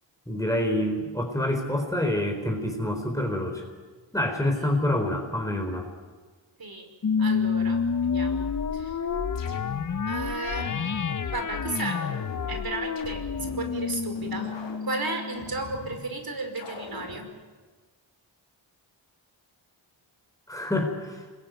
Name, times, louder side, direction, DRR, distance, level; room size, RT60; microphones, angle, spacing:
voice 1, 0.3-3.6 4.1-5.9 20.5-21.2, left 1 dB, 5° left, 2 dB, 4.3 m, -27 dB
sound 1, 7.0-15.8, left 6 dB, 40° left, 0.9 m, -29 dB
voice 2, 7.2-9.0 10.0-10.8 11.3-12.0 12.5-14.5 14.8-17.3, right 3 dB, 50° right, 6 dB, 5.2 m, -34 dB
sound 2, 8.8-10.1 10.6-11.3 11.8-13.7 14.2-16.1 16.6-17.3, left 4 dB, 65° left, 3.7 m, -43 dB
26.5 x 22.0 x 9.4 m, 1.4 s
cardioid pair, 75°, 47 cm